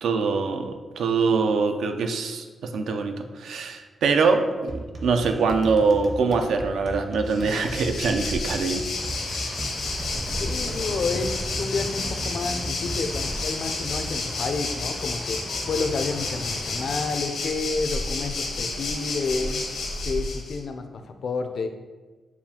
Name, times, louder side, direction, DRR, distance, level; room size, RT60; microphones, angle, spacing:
voice 1, 0.0-8.9 9.3-9.6, right 4 dB, 90° right, 6 dB, 0.4 m, -24 dB
sound 1, 4.7-13.4, right 2 dB, 50° right, 0.8 m, -37 dB
Waves surf, 7.3-20.6, left 3 dB, 85° left, 0.8 m, -31 dB
sound 2, 8.9-17.2, equal, 10° right, 0.4 m, -37 dB
voice 2, 10.4-15.4 15.7-19.6 20.0-21.7, left 4 dB, 65° left, 7 dB, 0.4 m, -30 dB
6.9 x 2.3 x 2.8 m, 1.3 s
cardioid pair, 95°, 0 cm